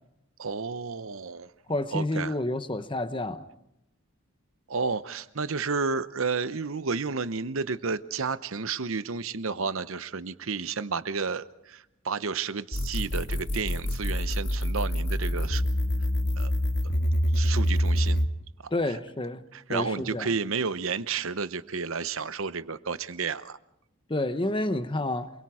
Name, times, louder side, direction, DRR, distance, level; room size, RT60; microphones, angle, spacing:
voice 1, 0.4-1.5 1.9-2.3 4.7-15.6 16.4-16.5 17.3-18.2 19.5-23.6, right 5 dB, 65° right, 0.8 m, -31 dB
voice 2, 1.7-3.4 18.7-19.4 19.7-20.3 24.1-25.3, left 2 dB, 25° left, 1.0 m, -29 dB
sound 1, 12.7-18.3, equal, 55° left, 1.7 m, -26 dB
28.0 x 22.0 x 4.9 m
head